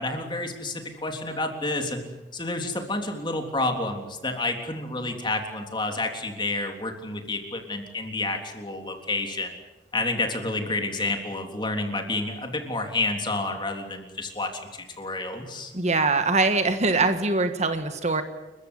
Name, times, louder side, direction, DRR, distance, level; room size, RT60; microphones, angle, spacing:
voice 1, 0.0-2.0 2.3-9.6 9.9-15.7, left 2 dB, 25° left, 4 dB, 3.5 m, -29 dB
voice 2, 15.7-18.2, right 3 dB, 40° right, 9 dB, 1.6 m, -23 dB
29.5 x 15.0 x 9.8 m, 1.1 s
head